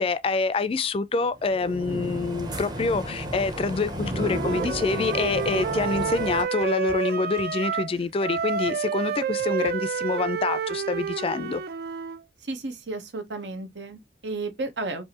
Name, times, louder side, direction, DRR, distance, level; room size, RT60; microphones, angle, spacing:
voice 1, 0.0-11.6, left 4 dB, 35° left, 0.4 m, -26 dB
sound 1, 1.4-6.4, equal, 25° right, 0.7 m, -32 dB
Wind instrument woodwind instrument, 4.1-7.9 8.2-12.2, right 7 dB, 60° right, 0.4 m, -29 dB
sound 2, 4.4-7.1 7.4-10.1, equal, 40° right, 1.6 m, -50 dB
voice 2, 12.4-15.0, right 2 dB, 90° right, 0.9 m, -33 dB
4.5 x 2.7 x 2.8 m
head